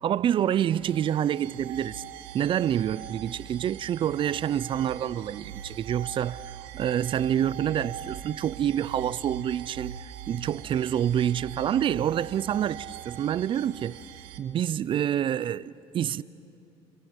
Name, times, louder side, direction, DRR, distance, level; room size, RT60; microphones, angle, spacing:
voice 1, 0.0-2.0 2.3-6.4 6.7-14.0 14.4-16.2, right 10 dB, 40° right, 0.6 m, -27 dB
sound 1, 0.7-14.4, right 10 dB, 90° right, 1.3 m, -42 dB
29.5 x 27.0 x 7.3 m
supercardioid pair, 100°, 13 cm